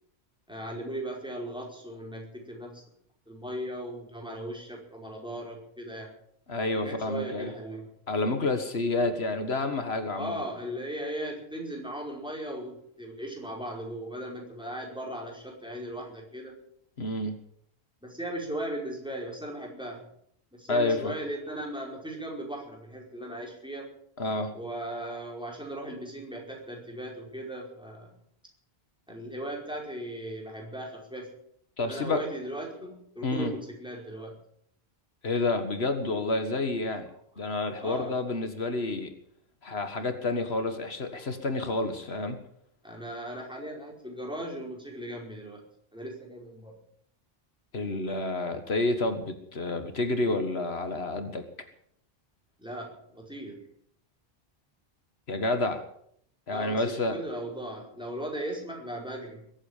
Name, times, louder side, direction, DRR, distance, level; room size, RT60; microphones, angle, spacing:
voice 1, 0.5-2.8 3.3-6.1 6.8-7.9 10.2-16.5 18.0-20.1 20.5-23.9 24.5-28.1 29.1-31.4 31.8-34.4 37.4-37.5 37.8-38.2 42.8-45.6 45.9-46.8 52.6-53.7 56.5-59.5, right 1 dB, 5° right, -1 dB, 5.1 m, -37 dB
voice 2, 6.5-7.5 8.1-10.4 17.0-17.4 20.7-21.1 24.2-24.5 31.8-32.2 33.2-33.5 35.2-37.1 37.4-39.1 39.6-42.4 47.7-51.4 55.3-55.8 56.5-57.2, left 2 dB, 85° left, 7 dB, 2.0 m, -29 dB
22.0 x 8.8 x 7.2 m, 0.67 s
omnidirectional pair, 1.0 m